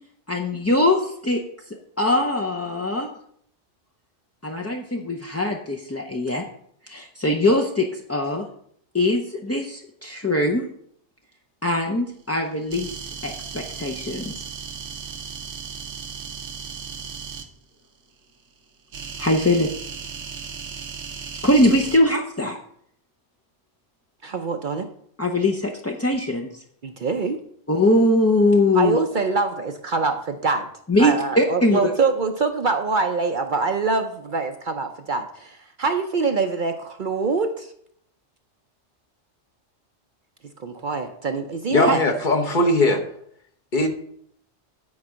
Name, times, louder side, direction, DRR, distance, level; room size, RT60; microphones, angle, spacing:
voice 1, 0.3-1.4 1.7-3.1 4.4-6.4 6.9-8.5 8.9-10.6 11.6-14.4 19.2-19.7 21.4-22.6 25.2-26.6 27.7-29.0 30.9-31.8, left 1 dB, 20° left, 1 dB, 0.5 m, -21 dB
sound 1, 12.7-17.5 18.9-22.0, right 6 dB, 85° right, 1.3 m, -36 dB
voice 2, 24.2-24.9 26.8-27.4 28.7-30.7 31.0-37.7 40.6-42.0, right 4 dB, 50° right, 6 dB, 0.7 m, -24 dB
voice 3, 41.7-43.1 43.7-43.9, left 2 dB, 45° left, 3 dB, 1.1 m, -19 dB
9.6 x 4.7 x 6.2 m, 0.66 s
omnidirectional pair, 1.2 m